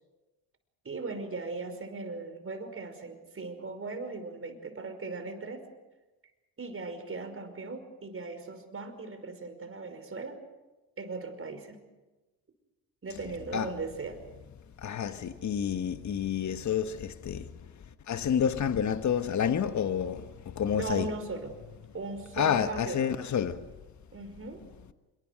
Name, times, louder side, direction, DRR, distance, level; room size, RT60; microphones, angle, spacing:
voice 1, 0.8-5.7 6.6-10.4 11.0-11.8 13.0-14.2 20.7-21.6 21.9-23.1 24.1-24.6, right 3 dB, 35° right, 5.3 m, -38 dB
voice 2, 14.8-17.5 18.1-21.1 22.4-23.6, left 8 dB, 45° left, 1.5 m, -29 dB
26.0 x 23.0 x 6.6 m
supercardioid pair, 70°, 39 cm